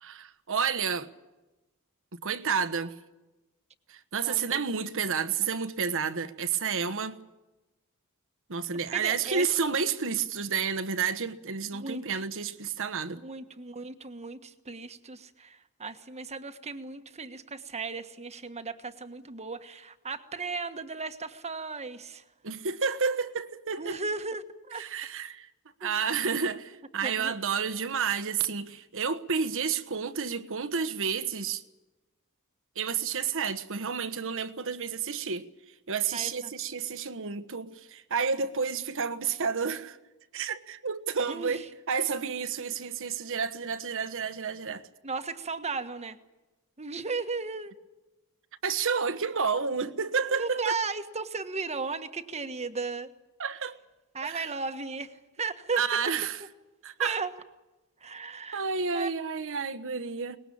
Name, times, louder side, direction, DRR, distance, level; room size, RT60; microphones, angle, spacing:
voice 1, 0.0-1.1 2.1-2.9 3.9-7.2 8.5-13.2 22.4-24.0 24.8-25.5 25.8-31.6 32.8-35.5 35.9-40.0 40.3-44.8 48.6-50.8 53.4-53.8 54.2-54.5 55.8-56.4 56.8-57.2 58.5-60.4, right 6 dB, 65° right, 1.3 m, -30 dB
voice 2, 4.2-4.6 8.9-9.5 11.7-12.2 13.2-22.2 23.8-24.8 25.8-25.9 27.0-27.3 36.1-36.5 41.3-41.7 45.0-46.2 46.8-47.7 50.3-53.1 54.1-55.8 57.0-57.3 58.0-58.6 58.9-59.1, right 4 dB, 30° right, 1.4 m, -35 dB
23.0 x 20.5 x 8.7 m
head